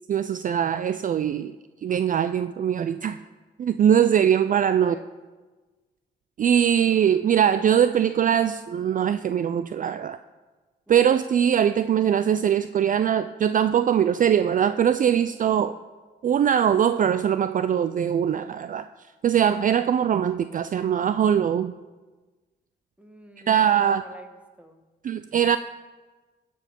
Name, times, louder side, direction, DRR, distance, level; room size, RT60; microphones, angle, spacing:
voice 1, 0.1-1.6 1.8-3.2 3.6-5.0 6.4-10.2 10.9-15.8 16.2-18.9 19.2-21.7 23.5-24.0 25.0-25.6, right 9 dB, 45° right, 11 dB, 0.4 m, -21 dB
voice 2, 4.8-5.1 10.9-11.1 23.0-24.8, equal, 5° right, 5 dB, 1.5 m, -47 dB
15.5 x 5.3 x 5.2 m, 1.3 s
cardioid pair, 65°, 19 cm